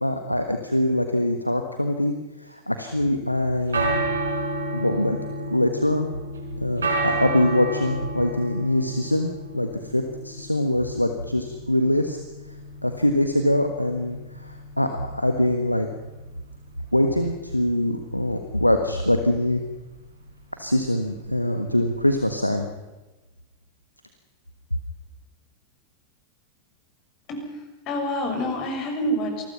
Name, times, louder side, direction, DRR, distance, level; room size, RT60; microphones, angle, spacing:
voice 1, 0.0-4.1 4.7-5.2 5.5-6.1 6.6-12.2 12.8-15.9 16.9-19.6 20.6-22.7, left 1 dB, 90° left, 6 dB, 1.5 m, -23 dB
sound 1, 3.4-22.4, right 2 dB, 75° right, 4.8 m, -32 dB
voice 2, 27.3-27.6 27.9-29.4, equal, 40° left, 3 dB, 6.4 m, -27 dB
27.5 x 20.5 x 5.7 m, 1.1 s
figure-of-eight pair, 90°, 0 cm